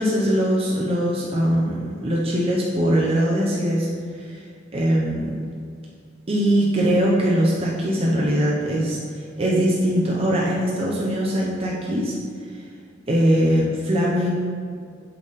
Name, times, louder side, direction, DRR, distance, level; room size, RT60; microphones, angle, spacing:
voice 1, 0.0-3.9 4.2-4.4 4.7-5.3 6.3-12.1 13.1-14.3, equal, 30° right, -5 dB, 0.8 m, -21 dB
6.9 x 5.3 x 4.1 m, 2.2 s
head